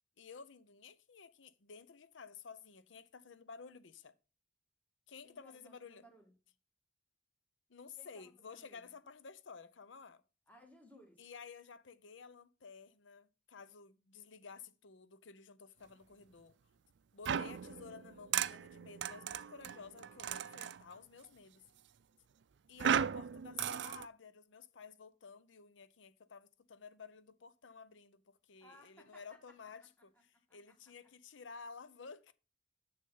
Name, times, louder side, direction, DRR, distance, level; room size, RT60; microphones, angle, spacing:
voice 1, 0.2-4.1 5.1-6.0 7.7-10.2 11.2-16.6 17.1-21.6 22.7-30.1 30.5-32.3, left 5 dB, 80° left, 0.7 m, -53 dB
voice 2, 5.2-6.3 8.0-8.8 10.5-11.2 28.6-29.6 30.3-30.8, equal, 10° left, 2.0 m, -62 dB
sound 1, 17.2-20.8 22.8-24.1, right 8 dB, 70° right, 0.4 m, -36 dB
7.2 x 6.4 x 5.5 m
head